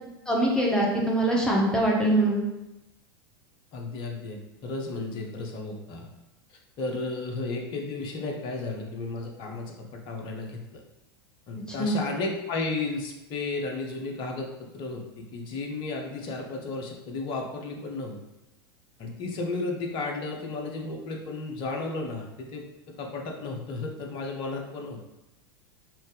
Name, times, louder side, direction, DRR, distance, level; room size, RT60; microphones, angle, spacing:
voice 1, 0.3-2.4 11.8-12.0, right 1 dB, 5° left, -3 dB, 0.8 m, -23 dB
voice 2, 3.7-6.1 6.8-10.8 11.5-18.2 19.0-22.6 23.0-25.0, left 3 dB, 40° left, 1 dB, 0.9 m, -33 dB
5.6 x 2.7 x 3.3 m, 0.96 s
figure-of-eight pair, 85°, 13 cm